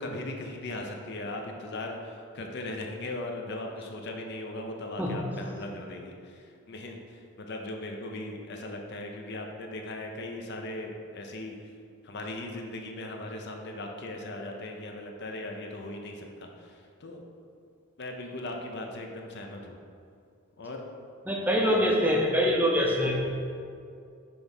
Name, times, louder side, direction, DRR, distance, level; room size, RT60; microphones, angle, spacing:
voice 1, 0.0-11.5 12.0-17.2 18.0-19.8 20.6-20.8, left 2 dB, 55° left, 2 dB, 0.6 m, -38 dB
voice 2, 21.3-23.3, equal, 10° right, -1 dB, 0.6 m, -24 dB
6.2 x 3.5 x 5.3 m, 2.4 s
head